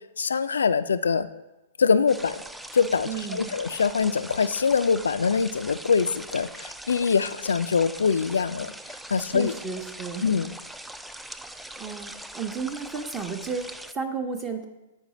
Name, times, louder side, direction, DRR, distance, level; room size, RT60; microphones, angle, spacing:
voice 1, 0.2-1.3 1.8-2.4 2.7-8.7 9.1-9.5 10.2-10.5, left 5 dB, 85° left, 13 dB, 0.3 m, -23 dB
sound 1, 2.1-13.9, right 1 dB, 5° right, 0.3 m, -41 dB
voice 2, 3.1-3.6 9.2-10.4 11.8-14.6, right 5 dB, 25° right, 3 dB, 0.8 m, -33 dB
9.0 x 4.8 x 4.1 m, 1.0 s
hypercardioid pair, 125°, 0 cm